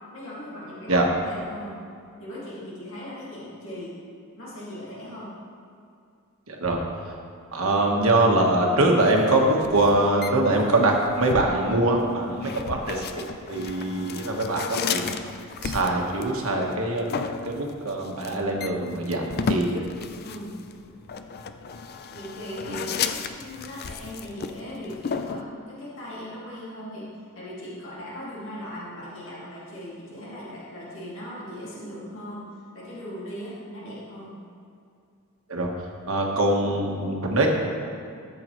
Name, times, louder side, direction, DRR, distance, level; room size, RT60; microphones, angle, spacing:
voice 1, 0.1-1.8 2.2-4.0 4.4-5.3 7.5-7.7 12.4-12.6 20.2-20.6 22.1-27.1 27.3-32.4 32.7-34.4, equal, 65° left, -8 dB, 2.2 m, -38 dB
voice 2, 6.5-6.8 7.5-15.3 15.6-17.1 17.5-19.8 35.5-35.7 36.1-37.5, right 2 dB, 70° right, 0 dB, 1.3 m, -23 dB
sound 1, 9.1-25.4, left 5 dB, 45° left, 0.4 m, -34 dB
13.0 x 7.8 x 3.1 m, 2.4 s
head